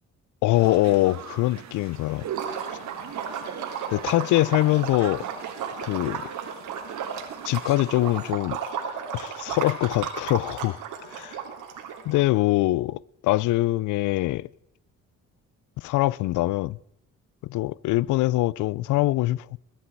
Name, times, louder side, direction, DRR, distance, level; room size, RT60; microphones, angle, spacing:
voice 1, 0.4-2.3 3.9-5.3 5.8-6.2 7.4-8.6 9.1-10.8 11.1-11.4 12.1-14.5 15.8-16.8 17.5-19.6, left 17 dB, 80° left, 0.4 m, -23 dB
sound 1, 0.5-8.3, right 8 dB, 65° right, 1.7 m, -41 dB
Liquid, 2.3-12.2, right 7 dB, 85° right, 2.8 m, -34 dB
21.0 x 11.5 x 4.5 m
cardioid pair, 90°, 30 cm